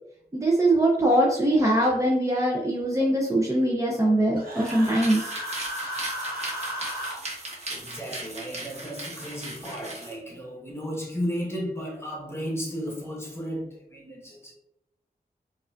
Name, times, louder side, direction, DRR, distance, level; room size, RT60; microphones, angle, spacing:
voice 1, 0.3-5.3, right 1 dB, 20° right, -3 dB, 0.6 m, -22 dB
Human voice, 4.4-7.2, equal, 65° right, 1.1 m, -34 dB
sound 1, 4.5-10.1, right 2 dB, 45° right, 1.1 m, -37 dB
voice 2, 7.7-14.5, equal, 15° left, -2 dB, 1.1 m, -34 dB
4.6 x 2.4 x 2.5 m, 0.82 s
wide cardioid pair, 95°, 16 cm